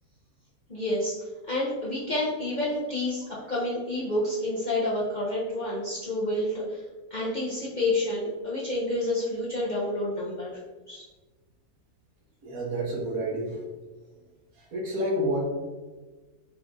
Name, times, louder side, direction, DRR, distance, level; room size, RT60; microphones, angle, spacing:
voice 1, 0.7-1.1 1.5-3.2 3.5-6.8 7.1-10.6 10.9-11.0, left 1 dB, 40° left, -8 dB, 0.7 m, -29 dB
voice 2, 12.4-13.6 14.6-15.4, right 1 dB, 65° right, -2 dB, 1.4 m, -29 dB
4.8 x 2.5 x 3.7 m, 1.3 s
omnidirectional pair, 1.7 m